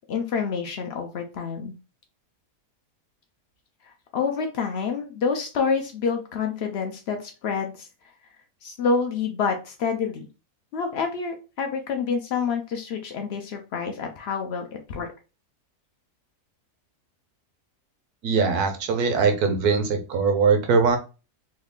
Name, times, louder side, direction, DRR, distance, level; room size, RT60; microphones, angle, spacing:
voice 1, 0.1-1.7 3.8-7.9 8.6-10.3 10.7-15.1, left 5 dB, 85° left, 4 dB, 0.5 m, -28 dB
voice 2, 18.2-21.0, right 5 dB, 75° right, 6 dB, 1.2 m, -21 dB
3.1 x 2.4 x 3.5 m, 0.31 s
omnidirectional pair, 1.7 m